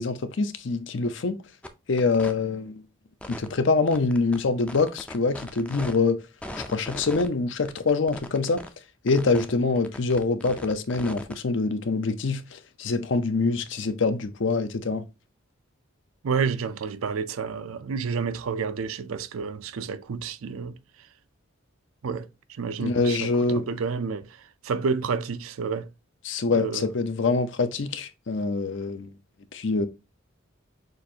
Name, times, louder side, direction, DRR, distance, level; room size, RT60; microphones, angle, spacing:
voice 1, 0.0-1.4 1.9-2.8 3.3-6.2 6.6-8.6 9.0-15.0 22.8-23.7 26.2-29.1 29.5-29.9, left 3 dB, 60° left, 0.6 m, -25 dB
sound 1, 1.6-1.7 2.0-2.3 3.2-3.5 3.9-6.0 6.4-7.3 7.6-8.7 9.1-9.5 9.8-11.3, left 1 dB, 5° left, 0.4 m, -38 dB
voice 2, 16.2-20.8 22.0-22.3 22.6-25.9 26.5-26.9, right 5 dB, 85° right, 0.5 m, -30 dB
6.3 x 2.5 x 2.7 m
head